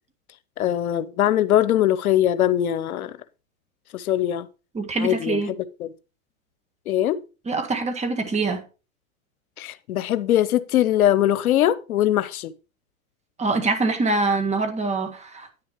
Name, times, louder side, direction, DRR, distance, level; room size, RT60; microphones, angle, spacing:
voice 1, 0.6-3.2 3.9-4.5 5.0-5.9 6.9-7.2 9.6-12.5, left 12 dB, 85° left, 0.8 m, -21 dB
voice 2, 4.8-5.5 7.5-8.6 13.4-15.6, right 3 dB, 15° right, 1.8 m, -24 dB
9.8 x 9.5 x 3.0 m
hypercardioid pair, 115°, 42 cm